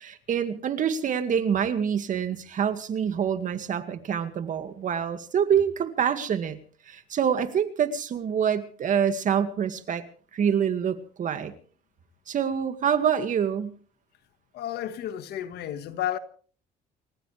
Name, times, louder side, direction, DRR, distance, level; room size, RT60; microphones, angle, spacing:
voice 1, 0.0-6.6 6.9-10.0 10.3-11.5 12.3-13.8, right 8 dB, 50° right, 2.1 m, -26 dB
voice 2, 14.5-16.2, left 11 dB, 70° left, 1.7 m, -32 dB
28.5 x 15.0 x 3.4 m
cardioid pair, 110°, 17 cm